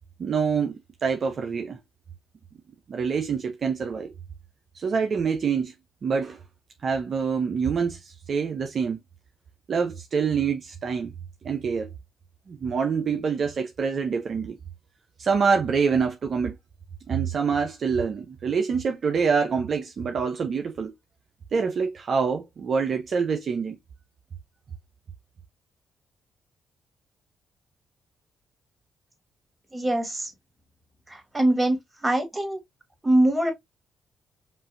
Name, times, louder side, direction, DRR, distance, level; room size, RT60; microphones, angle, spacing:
voice 1, 0.2-1.8 2.9-4.1 4.7-5.7 6.0-6.4 6.8-9.0 9.7-11.1 11.4-11.9 12.5-14.6 15.2-16.5 17.1-20.9 21.5-23.8, right 5 dB, 55° right, 0.6 m, -26 dB
voice 2, 29.7-30.3 31.1-31.8 32.0-32.6 33.0-33.5, right 1 dB, 15° right, 2.2 m, -23 dB
5.4 x 2.6 x 2.6 m
supercardioid pair, 55°, 0 cm